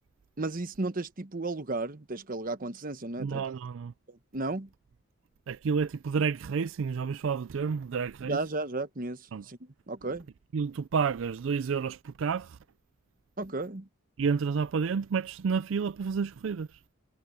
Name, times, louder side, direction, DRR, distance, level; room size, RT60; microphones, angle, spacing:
voice 1, 0.4-3.4 4.1-4.7 8.2-9.6 9.9-10.3 13.4-13.9, right 2 dB, 40° right, 1.1 m, -34 dB
voice 2, 3.2-3.9 5.5-8.4 9.3-9.4 10.5-12.6 14.2-16.7, right 5 dB, 70° right, 0.4 m, -30 dB
head